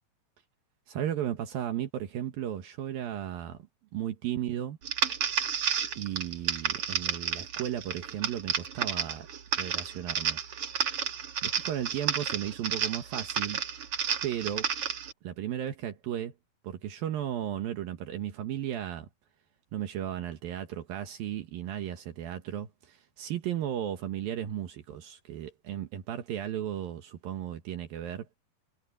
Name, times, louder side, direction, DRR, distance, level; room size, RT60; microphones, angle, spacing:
voice 1, 0.9-3.6 3.9-4.8 6.0-9.3 9.6-10.4 11.4-13.6 14.2-14.7 15.2-16.3 16.6-19.1 19.7-28.3, right 10 dB, 75° right, 3.1 m, -35 dB
sound 1, 4.8-15.1, right 7 dB, 50° right, 1.9 m, -31 dB
omnidirectional pair, 4.3 m